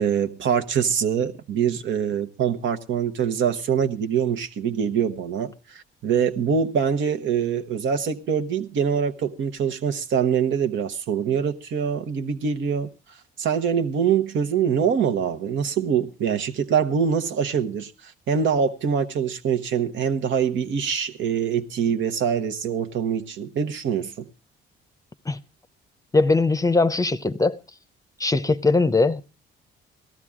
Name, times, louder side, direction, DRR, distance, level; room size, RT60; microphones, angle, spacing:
voice 1, 0.0-12.9 13.4-24.3, right 7 dB, 70° right, 1.1 m, -24 dB
voice 2, 26.1-27.6 28.2-29.2, left 3 dB, 15° left, 0.7 m, -20 dB
18.0 x 13.0 x 3.6 m
cardioid pair, 90°, 20 cm